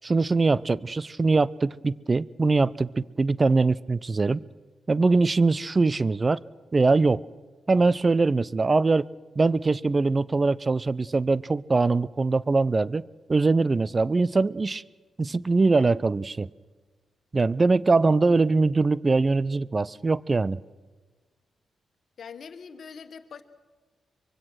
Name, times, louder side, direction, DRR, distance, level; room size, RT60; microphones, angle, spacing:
voice 1, 0.0-4.4 4.9-6.4 6.7-7.2 7.7-9.1 9.4-13.0 13.3-14.8 15.2-16.5 17.3-20.6, right 3 dB, 40° right, 21 dB, 0.6 m, -22 dB
voice 2, 22.2-23.4, left 6 dB, 65° left, 10 dB, 1.5 m, -42 dB
24.0 x 22.5 x 6.3 m, 1.4 s
hypercardioid pair, 40°, 0 cm